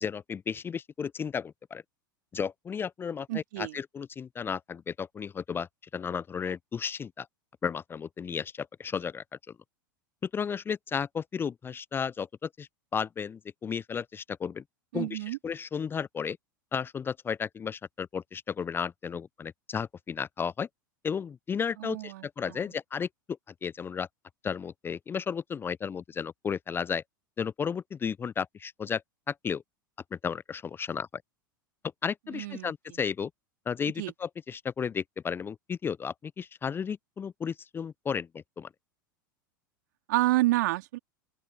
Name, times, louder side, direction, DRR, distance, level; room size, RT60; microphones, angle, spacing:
voice 1, 0.0-1.8 2.3-7.3 7.6-9.4 10.2-14.6 14.9-15.2 15.4-16.4 16.7-20.7 21.0-23.1 23.6-24.1 24.4-27.0 27.4-29.0 29.3-29.6 30.1-31.2 32.0-33.3 33.7-38.7, left 6 dB, 20° left, 0.6 m, -33 dB
voice 2, 3.3-3.8 14.9-15.4 21.8-22.7 32.3-33.0 34.0-34.1 40.1-41.0, right 18 dB, 60° right, 3.3 m, -29 dB
open air
figure-of-eight pair, 85°, 11 cm